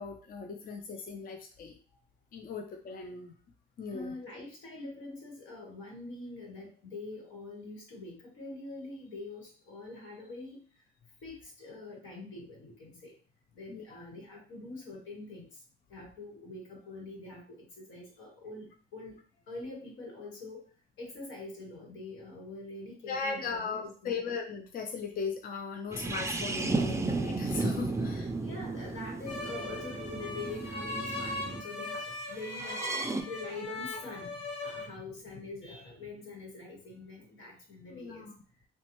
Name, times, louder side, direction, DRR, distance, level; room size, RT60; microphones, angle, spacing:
voice 1, 0.0-1.8 2.3-3.3 3.8-4.2 13.7-14.0 23.1-28.3 37.9-38.3, left 5 dB, 45° left, 4 dB, 0.5 m, -38 dB
voice 2, 3.9-10.6 11.2-13.1 13.5-15.5 15.9-19.2 19.5-20.6 21.0-24.2 27.8-32.0 32.3-38.2, left 2 dB, 85° left, 0 dB, 1.3 m, -44 dB
sound 1, 25.9-31.6 32.4-33.2, right 3 dB, 15° right, 0.4 m, -34 dB
sound 2, 29.3-34.9, left 2 dB, 30° left, 1.6 m, -39 dB
3.9 x 2.2 x 3.0 m, 0.42 s
cardioid pair, 90°, 20 cm